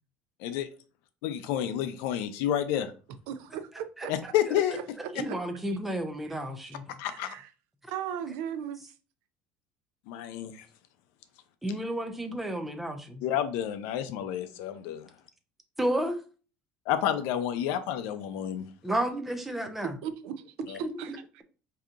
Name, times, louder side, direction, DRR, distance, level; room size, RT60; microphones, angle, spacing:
voice 1, 1.2-2.9 4.1-4.8 7.0-7.3 10.1-10.5 13.2-15.1 16.9-18.6 20.7-20.8, left 10 dB, 65° left, 11 dB, 0.5 m, -29 dB
voice 2, 3.3-4.1 5.0-5.4 6.3-6.4 7.1-7.5 7.9-8.8 20.0-21.4, right 9 dB, 70° right, 11 dB, 0.4 m, -37 dB
voice 3, 5.1-6.8 11.6-13.2 15.8-16.2 18.8-19.9 20.8-21.2, right 1 dB, 5° right, 6 dB, 0.4 m, -32 dB
4.8 x 2.8 x 2.4 m, 0.36 s
cardioid pair, 170°, 4 cm